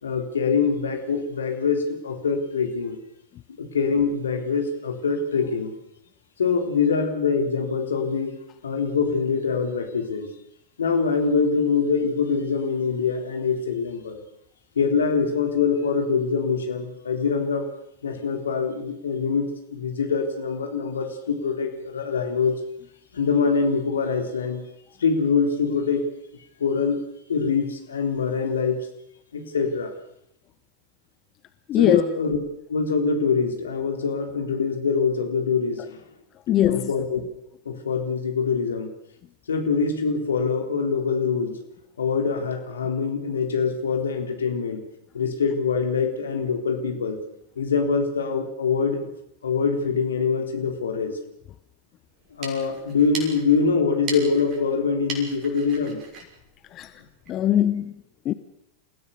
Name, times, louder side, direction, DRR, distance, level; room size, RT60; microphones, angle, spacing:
voice 1, 0.0-3.0 3.6-5.7 6.4-8.4 8.6-10.3 10.8-14.2 14.8-17.7 18.0-22.5 23.1-24.6 25.0-26.1 26.6-27.0 27.3-28.9 29.3-29.9 31.8-32.4 32.7-36.0 36.5-37.2 37.7-38.9 39.5-41.6 42.0-44.8 45.1-47.2 47.6-49.1 49.4-51.2 52.4-56.0, left 5 dB, 70° left, 3.6 m, -24 dB
voice 2, 31.7-32.0 36.5-36.9 56.7-56.9 57.3-58.3, left 12 dB, 35° left, 1.0 m, -21 dB
sound 1, 52.1-57.4, right 3 dB, 35° right, 6.3 m, -40 dB
29.0 x 16.5 x 6.9 m
figure-of-eight pair, 90°, 0 cm